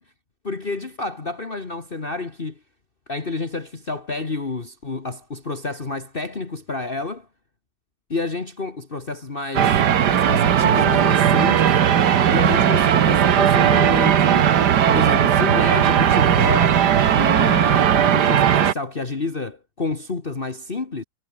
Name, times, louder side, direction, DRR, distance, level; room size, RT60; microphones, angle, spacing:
voice 1, 0.4-2.6 3.1-7.3 8.1-9.8 10.1-11.7 12.3-14.5 14.9-16.8 17.1-21.0, left 3 dB, 35° left, 1.9 m, -29 dB
sound 1, 9.5-18.7, right 9 dB, 80° right, 1.8 m, -17 dB
omnidirectional pair, 1.8 m